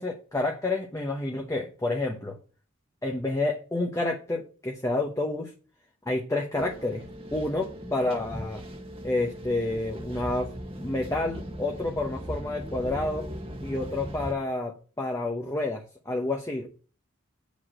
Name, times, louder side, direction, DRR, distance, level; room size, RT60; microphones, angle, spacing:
voice 1, 0.0-2.4 3.0-5.5 6.1-8.6 9.0-13.3 13.6-16.7, left 2 dB, 15° left, 2 dB, 0.9 m, -29 dB
sound 1, 6.6-14.3, equal, 25° right, 1.3 m, -39 dB
8.1 x 5.2 x 7.4 m, 0.38 s
head